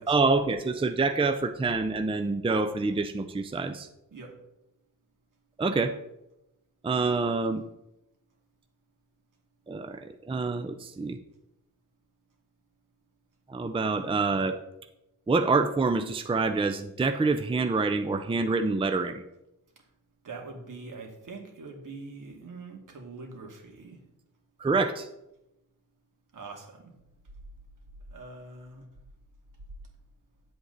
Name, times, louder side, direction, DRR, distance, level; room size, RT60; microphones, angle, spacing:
voice 1, 0.1-3.9 5.6-5.9 6.8-7.6 9.7-11.2 13.5-14.6 15.3-19.2 24.6-25.1, right 3 dB, 15° right, 8 dB, 0.5 m, -26 dB
voice 2, 20.2-24.0 26.3-26.9 28.1-28.9, right 3 dB, 70° right, 1 dB, 2.4 m, -43 dB
10.0 x 7.8 x 4.0 m, 0.90 s
wide cardioid pair, 125°, 33 cm